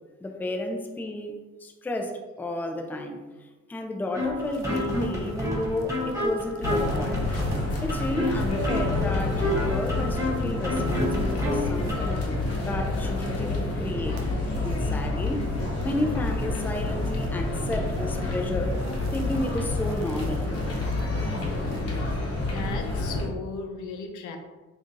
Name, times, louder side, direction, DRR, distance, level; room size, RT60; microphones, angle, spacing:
voice 1, 0.2-1.3 1.6-7.2 7.8-12.2 12.6-14.2 14.6-15.4 15.8-18.8 19.1-20.5, left 1 dB, 5° left, 4 dB, 0.4 m, -32 dB
sound 1, 4.1-12.1, left 1 dB, 10° right, 1.4 m, -29 dB
sound 2, 4.2-13.6 13.9-21.8, right 2 dB, 65° right, 0.5 m, -43 dB
sound 3, 6.6-23.3, left 2 dB, 50° left, 1.0 m, -28 dB
voice 2, 22.4-24.4, left 4 dB, 75° left, 4 dB, 0.6 m, -36 dB
5.5 x 2.6 x 2.5 m, 1.2 s
cardioid pair, 90°, 30 cm